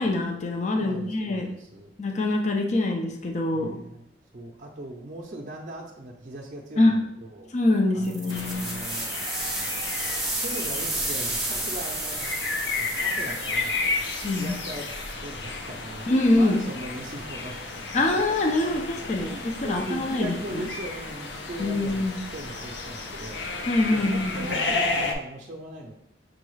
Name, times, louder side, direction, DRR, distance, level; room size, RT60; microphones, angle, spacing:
voice 1, 0.0-1.5 2.0-3.7 6.8-6.9 7.5-8.8 14.2-14.6 16.1-16.6 17.9-19.3 19.6-20.7 21.6-22.2 23.7-24.4, left 2 dB, 40° left, 3 dB, 0.4 m, -24 dB
voice 2, 0.8-1.9 3.5-4.0 4.3-7.5 7.9-9.2 10.4-12.3 12.8-13.8 14.3-14.9 15.2-16.1 16.3-17.9 19.1-25.9, right 1 dB, 45° right, -1 dB, 0.5 m, -39 dB
sound 1, 8.0-15.1, right 2 dB, ahead, 0.7 m, -32 dB
sound 2, 8.3-25.1, left 3 dB, 90° left, 0.6 m, -32 dB
6.1 x 2.3 x 3.1 m, 0.81 s
head